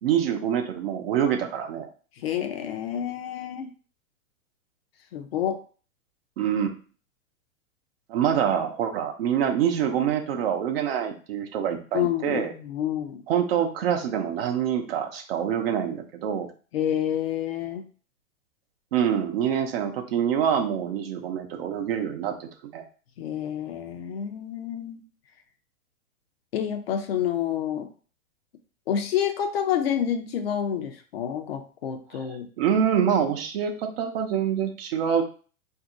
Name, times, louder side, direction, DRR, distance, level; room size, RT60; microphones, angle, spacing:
voice 1, 0.0-1.9 6.4-6.7 8.1-12.5 13.3-16.5 18.9-22.8 32.6-35.2, right 8 dB, 45° right, 5 dB, 0.8 m, -25 dB
voice 2, 2.2-3.7 5.1-5.6 11.9-13.2 16.7-17.8 23.2-25.0 26.5-27.9 28.9-32.5, left 9 dB, 45° left, 6 dB, 0.7 m, -28 dB
4.2 x 2.7 x 3.8 m, 0.38 s
figure-of-eight pair, 105°, 41 cm